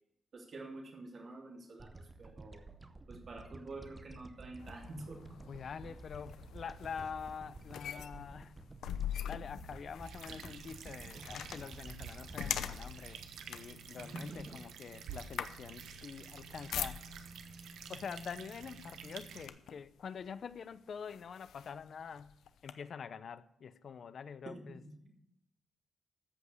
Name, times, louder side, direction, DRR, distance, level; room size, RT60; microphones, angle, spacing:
voice 1, 0.3-2.6 3.1-5.4 14.0-14.6 24.4-25.1, right 2 dB, 40° right, 3.0 m, -48 dB
sound 1, 1.8-14.3, right 3 dB, 15° right, 0.8 m, -52 dB
sound 2, 4.6-17.4 18.3-18.5 18.9-19.9 20.5-20.6 21.1-22.7, left 9 dB, 85° left, 0.8 m, -44 dB
voice 2, 5.5-8.7 9.3-13.2 13.5-17.0 17.9-24.8, left 6 dB, 45° left, 0.6 m, -46 dB
sound 3, 10.0-19.5, right 7 dB, 85° right, 1.2 m, -49 dB
14.0 x 5.4 x 8.0 m
wide cardioid pair, 155°, 0 cm